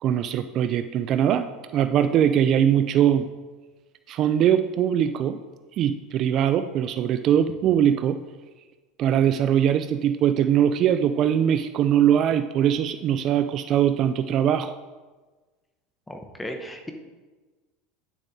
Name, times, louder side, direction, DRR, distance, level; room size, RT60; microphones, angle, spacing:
voice 1, 0.0-1.5 1.7-3.3 4.1-5.4 5.8-8.2 9.0-14.7, right 9 dB, 45° right, 10 dB, 0.3 m, -21 dB
voice 2, 16.1-16.9, equal, 10° left, 4 dB, 0.9 m, -35 dB
9.5 x 7.1 x 2.7 m, 1.3 s
supercardioid pair, 125°, 0 cm